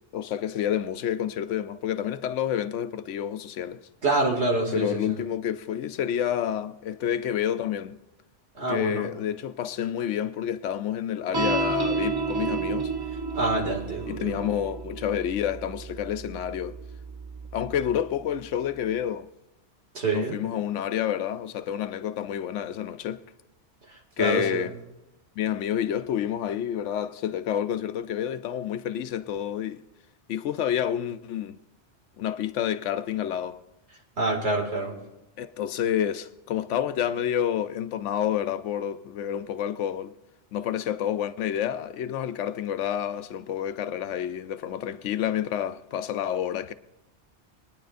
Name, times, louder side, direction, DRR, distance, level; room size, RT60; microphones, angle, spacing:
voice 1, 0.1-3.8 4.7-8.0 8.7-12.9 14.1-16.8 17.5-19.3 20.1-23.2 24.2-24.7 25.4-29.8 30.3-31.6 32.2-33.6 35.4-40.1 40.5-46.7, left 10 dB, 90° left, 0.9 m, -29 dB
voice 2, 4.0-5.2 8.5-9.1 13.3-14.4 19.9-20.4 23.9-24.7 34.2-34.9, right 2 dB, 65° right, 2.4 m, -27 dB
sound 1, 11.3-18.0, right 4 dB, 35° right, 0.4 m, -31 dB
22.0 x 10.0 x 2.5 m
omnidirectional pair, 1.2 m